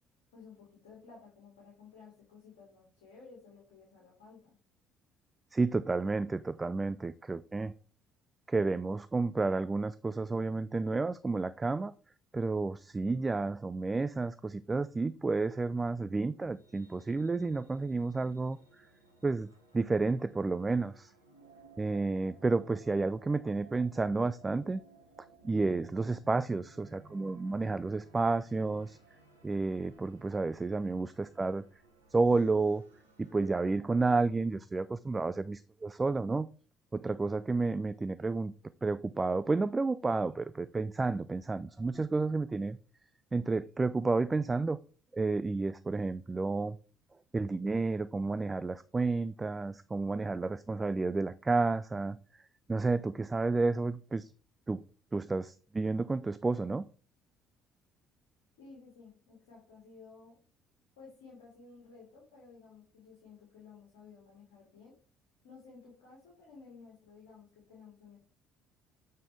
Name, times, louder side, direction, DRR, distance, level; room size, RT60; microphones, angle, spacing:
voice 1, 0.3-4.5 58.6-60.4 61.0-64.9 65.4-68.2, left 4 dB, 70° left, -3 dB, 2.5 m, -55 dB
voice 2, 5.5-7.7 8.5-11.9 12.3-18.6 19.2-21.1 21.8-24.8 25.4-29.0 29.4-31.6 32.1-32.8 33.2-36.5 36.9-38.5 38.8-42.8 43.3-44.8 45.1-46.8 47.3-52.2 52.7-54.3 54.7-54.8 55.1-56.9, right 3 dB, 20° right, 14 dB, 0.3 m, -31 dB
sound 1, 16.2-33.5, right 3 dB, 90° right, 1.1 m, -59 dB
8.3 x 4.3 x 3.4 m, 0.38 s
figure-of-eight pair, 50°, 0 cm